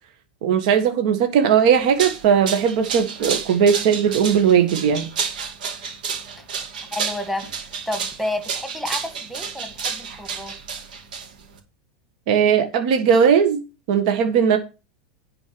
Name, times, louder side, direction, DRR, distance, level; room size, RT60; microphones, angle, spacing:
voice 1, 0.4-5.1 12.3-13.6 13.9-14.6, right 7 dB, 60° right, 1.6 m, -18 dB
sound 1, 1.7-11.6, right 6 dB, 85° right, 2.6 m, -30 dB
voice 2, 6.9-7.5 7.9-10.6, left 1 dB, ahead, 1.9 m, -30 dB
10.5 x 4.6 x 6.0 m
supercardioid pair, 135°, 4 cm